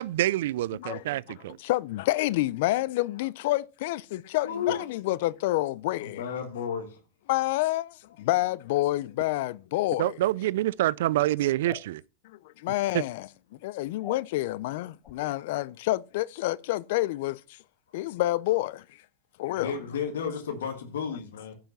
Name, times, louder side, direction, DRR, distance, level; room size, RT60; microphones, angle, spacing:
voice 1, 0.0-1.6 4.7-4.8 10.0-12.0 12.9-13.0, right 14 dB, 75° right, 0.4 m, -26 dB
voice 2, 1.6-6.2 7.3-10.2 12.2-13.3 13.6-17.6 17.9-18.8 19.4-19.7, left 17 dB, 65° left, 0.5 m, -28 dB
voice 3, 4.4-4.8 6.0-7.0 19.5-21.5, left 7 dB, 85° left, 1.7 m, -33 dB
sound 1, 11.6-11.9 14.0-14.2 15.0-15.2, left 10 dB, 35° left, 0.9 m, -42 dB
10.5 x 5.8 x 5.5 m
hypercardioid pair, 110°, 0 cm